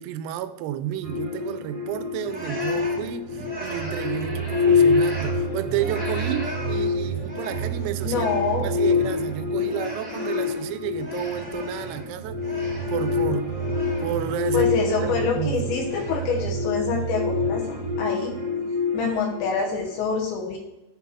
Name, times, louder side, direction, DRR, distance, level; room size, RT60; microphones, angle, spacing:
voice 1, 0.0-8.3 8.6-12.4 12.9-13.5 14.0-15.6, right 11 dB, 90° right, 11 dB, 3.3 m, -31 dB
sound 1, 1.0-19.9, left 3 dB, 25° right, 1.0 m, -26 dB
sound 2, 2.2-5.4 5.7-12.1 12.3-14.4 14.7-15.4 15.7-16.5, equal, 5° right, 1.2 m, -38 dB
voice 2, 8.0-8.7 14.5-18.4 18.9-20.6, left 5 dB, 75° left, 0 dB, 2.9 m, -26 dB
9.9 x 4.1 x 5.7 m, 1.0 s
omnidirectional pair, 6.0 m